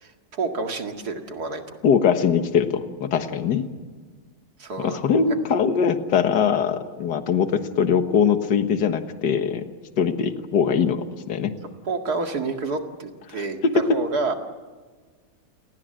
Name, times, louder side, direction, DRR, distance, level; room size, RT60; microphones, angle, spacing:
voice 1, 0.0-1.8 4.6-5.0 11.9-13.6 13.9-14.3, right 3 dB, 50° right, 4 dB, 2.5 m, -29 dB
voice 2, 1.8-3.7 4.8-9.7 10.0-11.5 13.3-14.0, left 6 dB, 60° left, 8 dB, 1.9 m, -22 dB
29.5 x 19.0 x 7.8 m, 1.4 s
omnidirectional pair, 2.2 m